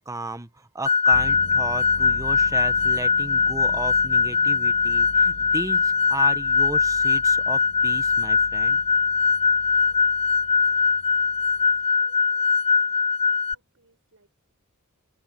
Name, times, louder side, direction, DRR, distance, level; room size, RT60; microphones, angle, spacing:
voice 1, 0.0-8.8, right 2 dB, 15° right, 1.0 m, -35 dB
sound 1, 0.9-13.5, left 5 dB, 25° left, 0.3 m, -21 dB
sound 2, 1.1-11.8, left 1 dB, 90° left, 2.1 m, -43 dB
voice 2, 9.7-14.3, right 2 dB, 65° right, 7.2 m, -64 dB
open air
head